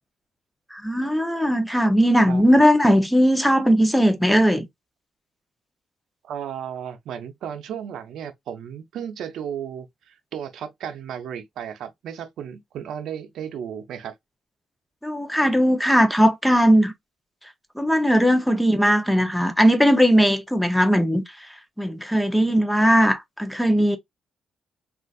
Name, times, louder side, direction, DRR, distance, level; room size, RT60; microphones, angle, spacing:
voice 1, 0.7-4.6 15.0-16.9 17.8-21.2 21.8-24.0, equal, 5° left, 0.6 m, -18 dB
voice 2, 6.2-14.2, right 8 dB, 80° right, 0.6 m, -34 dB
3.8 x 2.4 x 2.3 m
cardioid pair, 90°, 0 cm